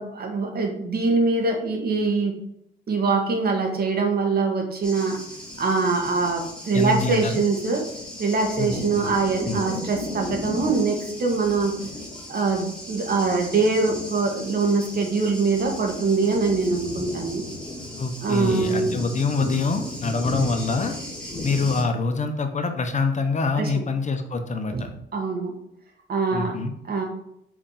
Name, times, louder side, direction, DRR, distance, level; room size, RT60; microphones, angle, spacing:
voice 1, 0.0-2.3 2.9-5.2 5.6-7.8 8.2-11.7 12.3-17.4 18.2-18.9 23.6-23.7 24.7-24.8 25.1-25.5 26.1-26.6 26.8-27.0, right 4 dB, 50° right, 2 dB, 1.9 m, -23 dB
Thunder, 4.8-21.8, left 1 dB, 5° left, 2.9 m, -35 dB
voice 2, 6.7-7.4 8.6-9.1 9.5-9.6 18.0-21.0 21.4-24.9 26.3-26.7, left 3 dB, 35° left, 6 dB, 0.9 m, -25 dB
5.0 x 4.9 x 5.7 m, 0.76 s
cardioid pair, 90°, 20 cm